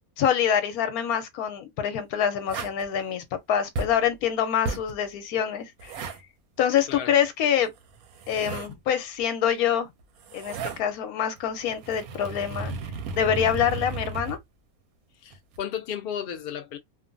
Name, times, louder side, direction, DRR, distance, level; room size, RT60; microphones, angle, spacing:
voice 1, 0.2-6.0 6.6-7.7 8.3-9.9 10.3-12.7 13.2-14.4, left 9 dB, 90° left, 1.1 m, -25 dB
sound 1, 2.5-2.9 3.8-4.1 4.7-4.9 5.8-6.2 7.8-8.7 10.0-10.8 11.4-14.4 15.3-15.6, right 4 dB, 85° right, 1.1 m, -34 dB
voice 2, 15.2-16.8, left 9 dB, 60° left, 0.5 m, -34 dB
2.8 x 2.2 x 2.5 m
omnidirectional pair, 1.5 m